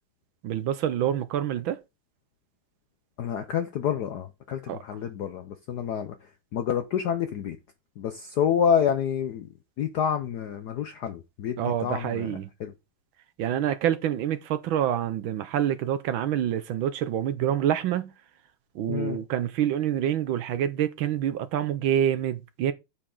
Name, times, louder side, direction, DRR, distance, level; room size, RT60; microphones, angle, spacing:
voice 1, 0.4-1.8 4.7-4.8 11.6-12.5 13.4-18.1 18.7-22.7, right 10 dB, 75° right, 1.5 m, -27 dB
voice 2, 3.2-6.1 6.5-7.6 8.0-9.5 9.8-12.7 18.9-19.2, left 8 dB, 65° left, 1.1 m, -28 dB
8.6 x 6.9 x 3.9 m
omnidirectional pair, 2.3 m